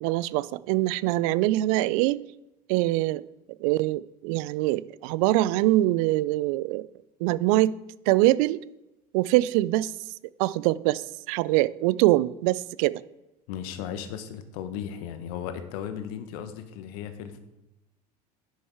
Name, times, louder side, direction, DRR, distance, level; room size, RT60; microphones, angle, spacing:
voice 1, 0.0-2.2 2.7-3.2 3.6-6.9 7.2-7.8 8.1-8.6 9.1-9.9 10.4-11.0 11.3-13.0, right 17 dB, 60° right, 20 dB, 0.4 m, -23 dB
voice 2, 13.5-17.4, left 9 dB, 65° left, 9 dB, 1.3 m, -36 dB
10.5 x 6.4 x 4.7 m, 0.94 s
hypercardioid pair, 80°, 21 cm